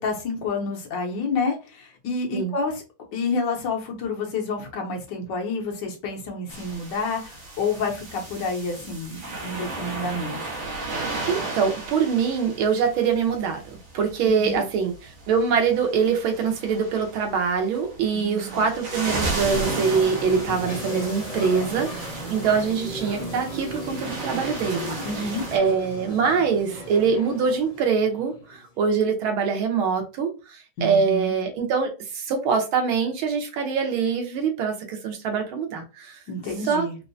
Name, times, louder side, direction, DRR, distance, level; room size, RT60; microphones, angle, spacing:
voice 1, 0.0-2.8 3.1-10.5 14.2-14.6 18.1-18.6 25.0-25.5 30.8-31.3 36.3-37.0, left 3 dB, 70° left, 1.4 m, -29 dB
sound 1, 6.5-25.6, right 2 dB, 75° right, 1.9 m, -35 dB
voice 2, 11.3-13.6 13.9-36.2 36.6-36.9, right 6 dB, 90° right, 1.7 m, -24 dB
sound 2, 18.7-28.7, equal, 30° left, 0.8 m, -36 dB
4.4 x 2.0 x 2.6 m
omnidirectional pair, 2.2 m